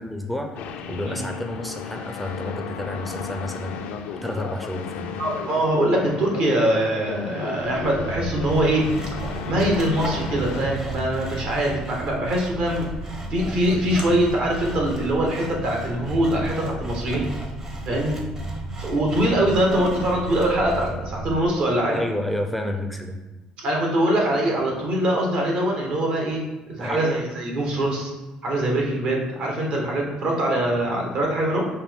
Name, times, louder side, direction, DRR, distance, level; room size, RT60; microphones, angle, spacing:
voice 1, 0.0-3.8 4.2-5.2 21.9-23.2 26.8-27.1, left 1 dB, ahead, 4 dB, 0.4 m, -30 dB
sound 1, 0.6-10.8, left 6 dB, 80° left, 0.3 m, -34 dB
voice 2, 5.2-8.9 9.4-12.9 13.3-17.3 17.8-18.2 18.8-22.0 23.6-26.4 26.7-28.1 28.4-31.7, right 1 dB, 65° right, -1 dB, 1.2 m, -23 dB
sound 2, 7.5-21.5, right 1 dB, 80° right, 0.8 m, -34 dB
Sawing, 8.5-20.9, right 1 dB, 30° right, 0.8 m, -39 dB
5.5 x 2.2 x 3.5 m, 1.2 s
cardioid pair, 105°, 2 cm